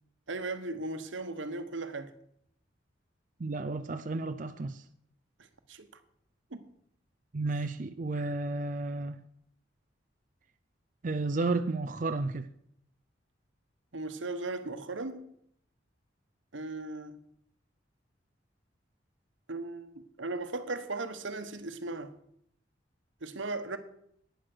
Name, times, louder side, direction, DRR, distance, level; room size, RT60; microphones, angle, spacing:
voice 1, 0.3-2.1 5.7-5.9 6.5-6.7 13.9-15.3 16.5-17.2 19.5-22.1 23.2-23.8, right 2 dB, 85° right, 1.2 m, -37 dB
voice 2, 3.4-4.8 7.3-9.2 11.0-12.5, right 3 dB, 45° right, 0.5 m, -32 dB
11.5 x 9.2 x 6.2 m
head